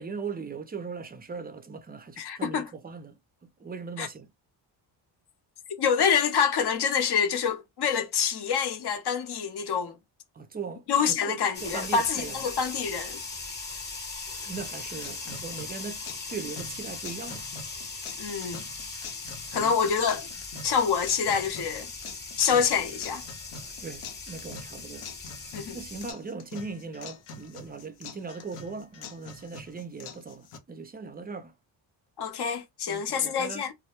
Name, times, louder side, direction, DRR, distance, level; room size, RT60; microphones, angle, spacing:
voice 1, 0.0-3.2 3.4-4.3 10.3-12.5 14.3-16.0 16.3-17.4 19.5-19.8 23.6-25.1 25.7-31.5 32.9-33.6, right 4 dB, 20° right, 0.4 m, -39 dB
voice 2, 2.2-2.7 4.0-4.1 5.8-10.0 10.9-13.2 18.2-18.6 19.5-20.3 20.6-21.9 22.4-23.2 25.5-25.8 32.2-33.7, left 6 dB, 55° left, 0.8 m, -26 dB
sound 1, 11.5-26.1, left 3 dB, 20° left, 0.9 m, -39 dB
sound 2, 14.6-30.6, left 4 dB, 90° left, 0.8 m, -45 dB
2.1 x 2.0 x 2.9 m
cardioid pair, 75°, 49 cm